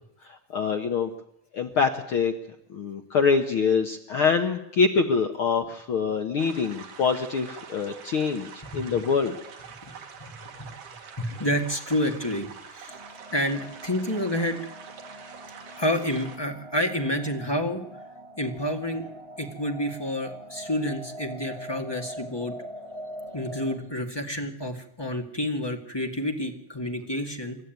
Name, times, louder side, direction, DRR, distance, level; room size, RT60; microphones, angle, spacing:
voice 1, 0.3-1.1 1.5-2.3 2.7-9.4, left 5 dB, 60° left, 6 dB, 1.5 m, -25 dB
sound 1, 6.4-16.4, right 6 dB, 80° right, 3.8 m, -45 dB
voice 2, 8.6-9.0 9.8-9.9 10.2-10.7 11.2-13.0 13.3-14.6 15.8-17.8 18.4-19.0 19.4-22.5 23.3-27.6, left 1 dB, 10° left, 2 dB, 1.6 m, -29 dB
sound 2, 12.9-23.8, equal, 10° right, 1.7 m, -43 dB
27.0 x 13.0 x 9.4 m, 0.79 s
omnidirectional pair, 3.6 m